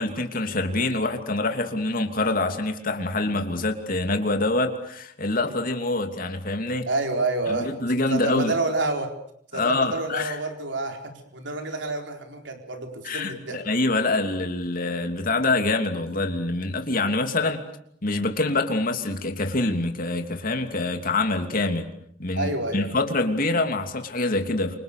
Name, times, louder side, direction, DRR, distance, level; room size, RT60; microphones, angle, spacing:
voice 1, 0.0-6.9 7.5-8.5 9.5-10.4 13.0-17.6 18.0-21.9 22.2-24.8, left 2 dB, 50° left, 5 dB, 3.0 m, -25 dB
voice 2, 6.8-7.7 8.1-9.1 9.5-13.6 22.4-22.8, right 2 dB, 75° right, 4 dB, 4.3 m, -28 dB
28.0 x 25.5 x 6.8 m, 0.68 s
head